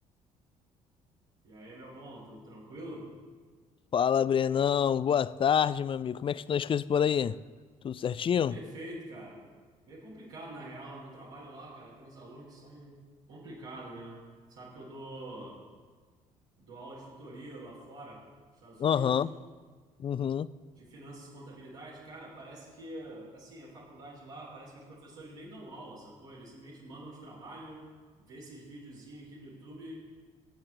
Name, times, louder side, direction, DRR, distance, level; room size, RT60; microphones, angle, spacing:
voice 1, 1.4-3.1 8.3-9.4 9.8-13.0 13.3-14.2 14.5-15.6 16.6-18.2 18.5-19.2 20.8-27.8 28.2-30.1, right 1 dB, 80° right, 3.4 m, -46 dB
voice 2, 3.9-7.4 7.8-8.5 18.8-19.3 20.0-20.5, left 8 dB, 30° left, 0.4 m, -27 dB
18.0 x 7.3 x 3.3 m
figure-of-eight pair, 50°, 18 cm